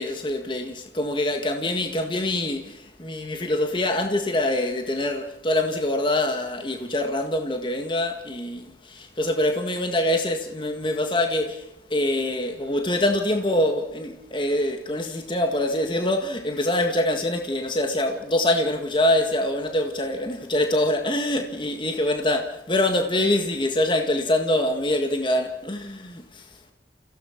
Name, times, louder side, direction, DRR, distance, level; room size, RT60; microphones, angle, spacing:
voice 1, 0.0-26.5, left 1 dB, 25° left, 1.7 m, -25 dB
29.5 x 16.5 x 6.0 m
head